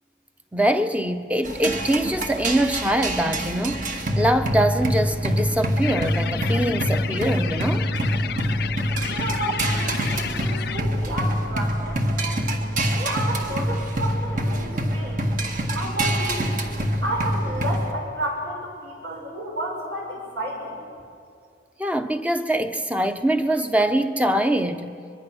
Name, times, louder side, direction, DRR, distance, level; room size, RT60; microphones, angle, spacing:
voice 1, 0.5-7.9 21.8-25.0, right 1 dB, 10° right, 0.8 m, -23 dB
sound 1, 1.4-17.9, equal, 50° right, 1.9 m, -25 dB
sound 2, 5.8-10.8, left 7 dB, 60° left, 0.5 m, -32 dB
voice 2, 9.0-12.4 12.9-15.2 15.7-16.6 17.0-20.8, right 1 dB, 70° right, 6.9 m, -31 dB
24.0 x 22.0 x 6.4 m
head